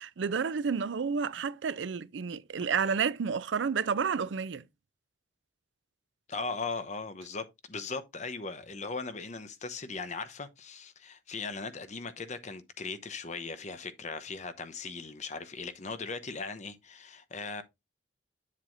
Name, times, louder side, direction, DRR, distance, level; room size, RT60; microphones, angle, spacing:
voice 1, 0.0-4.6, right 6 dB, 90° right, 0.5 m, -30 dB
voice 2, 6.3-17.6, left 4 dB, 40° left, 0.9 m, -38 dB
8.3 x 7.5 x 2.6 m
head